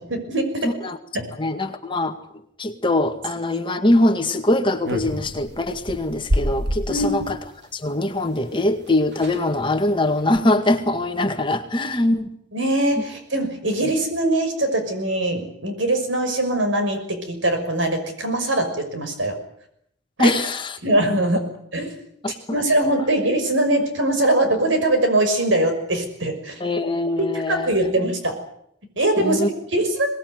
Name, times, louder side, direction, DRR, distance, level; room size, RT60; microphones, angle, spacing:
voice 1, 0.0-0.7 1.1-1.3 6.9-7.1 12.5-19.3 20.2-20.3 20.8-21.5 21.7-22.0 22.5-26.6 27.5-28.4 29.0-29.5 29.7-30.1, right 1 dB, 75° right, 6 dB, 6.0 m, -22 dB
voice 2, 0.6-1.0 1.4-2.2 2.6-7.4 7.7-12.3 20.2-20.7 22.2-22.6 26.6-27.7 29.2-29.5, left 1 dB, 25° left, 6 dB, 2.0 m, -22 dB
sound 1, 4.8-7.4 8.6-8.7 8.9-9.0 9.1-9.5 10.0-10.2, equal, 60° right, 2.9 m, -27 dB
23.5 x 20.0 x 9.6 m, 0.73 s
head